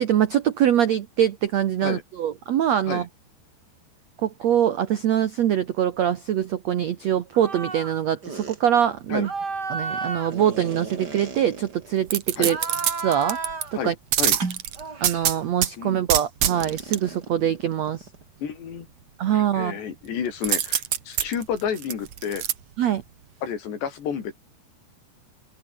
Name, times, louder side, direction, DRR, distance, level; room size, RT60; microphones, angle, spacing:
voice 1, 0.0-3.1 4.2-9.3 9.7-12.6 13.0-13.4 13.8-13.9 15.0-18.0 19.2-19.8 22.8-23.0, right 10 dB, 75° right, 1.5 m, -23 dB
sound 1, 7.3-7.9 8.2-8.6 9.2-12.0 12.4-13.8 14.3-15.3 16.4-18.2, right 4 dB, 25° right, 3.2 m, -33 dB
sound 2, 12.1-13.6 14.1-15.7 16.1-17.0 20.4-22.5 23.0-23.1, right 10 dB, 60° right, 1.7 m, -24 dB
voice 2, 13.8-14.4 15.8-16.0 18.4-18.9 19.3-22.4 23.4-24.3, left 7 dB, 80° left, 6.0 m, -30 dB
open air
omnidirectional pair, 4.9 m